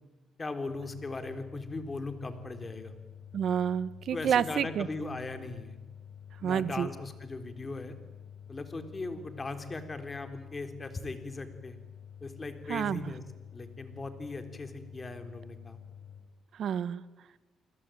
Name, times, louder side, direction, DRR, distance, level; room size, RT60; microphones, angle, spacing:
voice 1, 0.4-2.9 4.1-5.7 6.4-8.0 8.5-11.8 12.2-13.2 13.5-15.8, left 3 dB, 25° left, 8 dB, 3.7 m, -39 dB
sound 1, 0.7-16.2, left 8 dB, 80° left, 6.8 m, -49 dB
voice 2, 3.3-4.9 6.4-6.9 12.7-13.0 16.6-17.0, right 8 dB, 65° right, 16 dB, 1.2 m, -29 dB
29.5 x 20.0 x 9.2 m, 1.1 s
cardioid pair, 90°, 0 cm